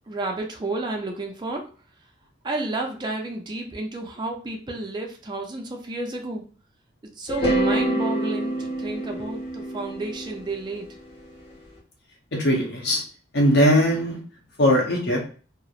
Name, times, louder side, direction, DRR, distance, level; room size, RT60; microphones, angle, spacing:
voice 1, 0.1-1.7 2.4-6.4 7.2-10.9, right 2 dB, 25° right, 2 dB, 0.4 m, -31 dB
sound 1, 7.3-11.5, right 1 dB, 30° left, 1.1 m, -26 dB
voice 2, 12.3-13.0 13.3-14.2 14.6-15.2, equal, 60° left, 0 dB, 0.7 m, -20 dB
2.9 x 2.0 x 2.3 m, 0.39 s
head